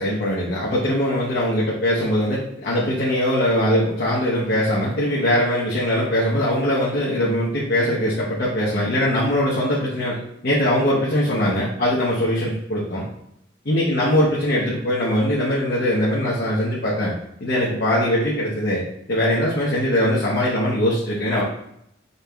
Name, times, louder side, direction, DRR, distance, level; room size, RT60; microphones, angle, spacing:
voice 1, 0.0-13.0 13.6-17.1 17.4-18.8 19.1-21.4, left 1 dB, 55° left, -6 dB, 0.8 m, -21 dB
5.2 x 3.2 x 2.3 m, 0.76 s
head